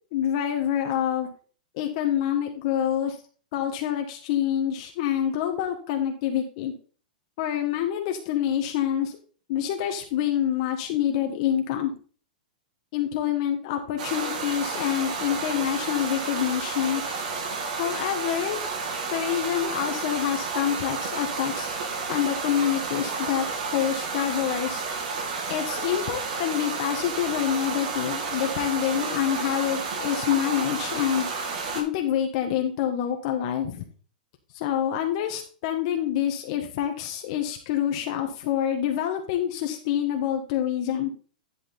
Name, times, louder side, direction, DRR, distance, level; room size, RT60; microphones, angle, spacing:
voice 1, 0.1-1.3 1.7-3.2 3.5-6.7 7.4-9.2 9.5-11.9 12.9-17.0 17.8-18.6 19.1-21.7 22.1-23.5 23.7-24.8 25.5-31.5 31.7-33.8 34.5-41.1, left 10 dB, 40° left, 3 dB, 1.4 m, -27 dB
sound 1, 14.0-31.8, right 4 dB, 55° right, 2.8 m, -31 dB
11.0 x 6.3 x 3.8 m, 0.39 s
supercardioid pair, 165°, 5 cm